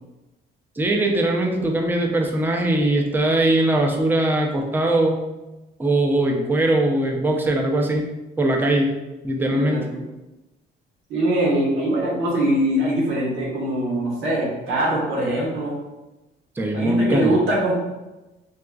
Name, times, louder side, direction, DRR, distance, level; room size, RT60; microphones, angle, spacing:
voice 1, 0.8-5.3 5.8-8.9 9.2-9.8 16.6-17.3, right 1 dB, 10° right, 1 dB, 0.4 m, -21 dB
voice 2, 9.4-10.1 11.1-15.8 16.7-17.7, right 1 dB, 85° right, -5 dB, 1.1 m, -22 dB
3.8 x 2.3 x 2.3 m, 1.0 s
cardioid pair, 90°, 20 cm